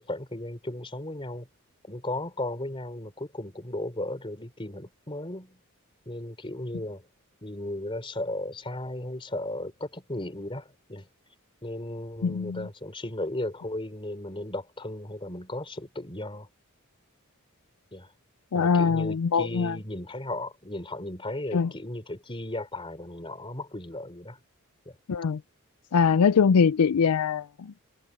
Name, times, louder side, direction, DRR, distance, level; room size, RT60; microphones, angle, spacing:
voice 1, 0.0-1.5 1.9-5.6 6.1-7.0 7.4-11.1 11.6-16.5 17.9-18.1 18.5-24.4 24.9-25.0, left 1 dB, 25° left, 3.6 m, -35 dB
voice 2, 12.2-12.7 18.5-19.8 21.5-21.7 25.1-25.4 25.9-27.8, left 6 dB, 85° left, 0.4 m, -23 dB
head